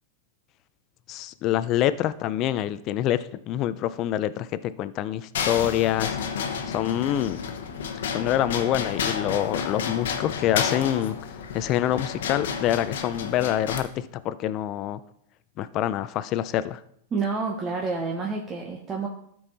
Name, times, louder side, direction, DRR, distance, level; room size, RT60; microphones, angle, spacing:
voice 1, 1.1-6.2 6.7-7.4 8.1-11.2 11.5-15.0 15.6-16.8, left 12 dB, 40° left, 14 dB, 0.5 m, -26 dB
sound 1, 5.3-13.8, left 6 dB, 80° left, 1.0 m, -31 dB
voice 2, 17.1-19.1, right 4 dB, 20° right, 0 dB, 1.0 m, -28 dB
12.5 x 4.7 x 4.0 m, 0.71 s
hypercardioid pair, 135°, 0 cm